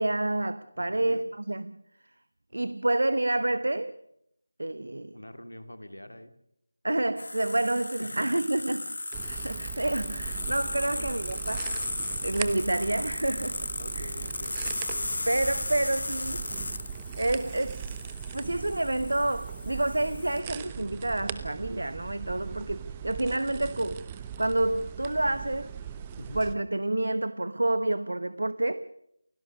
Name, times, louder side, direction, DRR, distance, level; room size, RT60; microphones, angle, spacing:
voice 1, 0.0-1.8 2.5-3.9 4.6-5.2 6.8-8.8 9.2-11.9 12.2-13.6 13.9-14.1 15.2-16.5 17.2-18.0 18.3-24.0 24.4-25.7 26.3-28.9, right 1 dB, 70° right, 1.0 m, -28 dB
voice 2, 0.8-1.3 2.5-2.6 5.1-6.3 8.0-8.3 10.9-11.1 13.8-14.8 26.2-26.4, left 1 dB, 85° left, 2.8 m, -44 dB
sound 1, 7.2-20.4, left 2 dB, 65° left, 1.0 m, -36 dB
sound 2, 9.1-26.5, right 8 dB, 15° right, 1.0 m, -40 dB
28.5 x 16.5 x 6.6 m
figure-of-eight pair, 165°, 0 cm